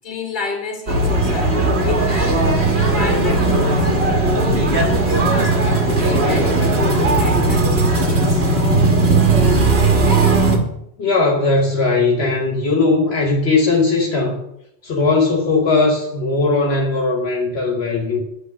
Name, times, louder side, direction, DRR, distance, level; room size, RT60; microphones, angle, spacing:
voice 1, 0.0-7.7 8.1-8.5, left 3 dB, 50° left, 1 dB, 1.6 m, -29 dB
sound 1, 0.9-10.6, right 2 dB, 80° right, 1.5 m, -17 dB
voice 2, 11.0-14.4 14.8-18.2, left 3 dB, 75° left, 0 dB, 1.3 m, -18 dB
8.6 x 3.3 x 6.0 m, 0.78 s
omnidirectional pair, 1.1 m